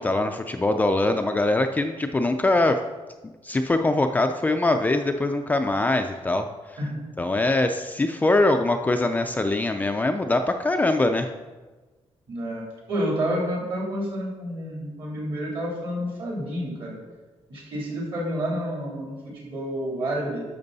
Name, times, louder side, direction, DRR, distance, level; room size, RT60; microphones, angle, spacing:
voice 1, 0.0-2.8 3.2-6.8 7.2-11.3, left 2 dB, 15° left, 5 dB, 0.4 m, -23 dB
voice 2, 12.3-17.0 17.5-20.4, equal, 55° right, -3 dB, 3.3 m, -29 dB
10.5 x 6.8 x 4.0 m, 1.2 s
wide cardioid pair, 170°, 11 cm